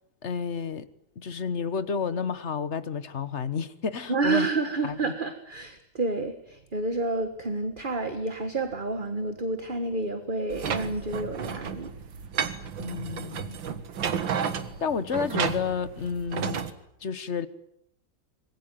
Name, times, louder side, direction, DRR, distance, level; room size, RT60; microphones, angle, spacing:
voice 1, 0.2-0.9 1.2-4.5 4.8-5.0 12.8-13.6 14.8-16.6 17.0-17.5, left 6 dB, 40° left, 1.3 m, -30 dB
voice 2, 4.1-11.9, right 3 dB, 30° right, 1.6 m, -29 dB
sound 1, 10.5-16.7, right 7 dB, 80° right, 2.3 m, -32 dB
26.0 x 21.0 x 9.1 m
omnidirectional pair, 2.1 m